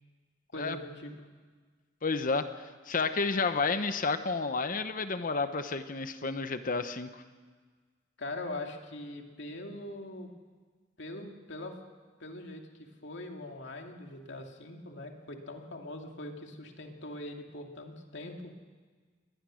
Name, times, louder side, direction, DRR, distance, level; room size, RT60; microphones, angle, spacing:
voice 1, 0.5-1.1 8.2-10.3 11.0-11.7 12.2-18.5, left 1 dB, 65° left, 3 dB, 2.5 m, -42 dB
voice 2, 2.0-2.5 2.9-7.1, left 4 dB, 45° left, 10 dB, 1.0 m, -30 dB
22.5 x 19.5 x 6.4 m, 1.5 s
head